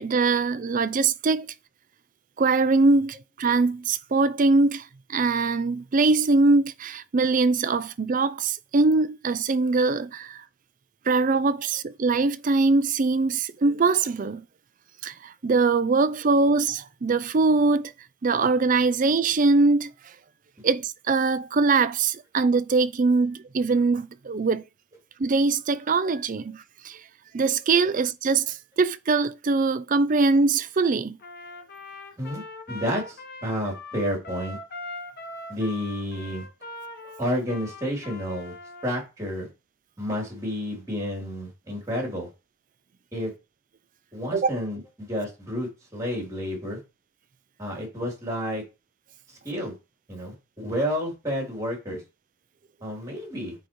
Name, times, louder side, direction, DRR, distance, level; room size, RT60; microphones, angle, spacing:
voice 1, 0.0-1.5 2.4-10.4 11.1-14.4 15.0-17.9 18.2-19.9 20.6-24.6 25.2-27.0 27.3-31.2 44.3-44.5, right 3 dB, 40° right, 0.4 m, -22 dB
Trumpet, 31.2-39.0, left 2 dB, 45° left, 1.0 m, -41 dB
voice 2, 32.7-34.6 35.5-36.4 37.2-38.5 38.8-39.5 40.0-42.3 43.1-43.3 44.1-46.8 47.6-48.6 49.4-49.8 50.1-52.0 52.8-53.5, equal, 15° right, 3.3 m, -30 dB
9.1 x 5.0 x 3.1 m
head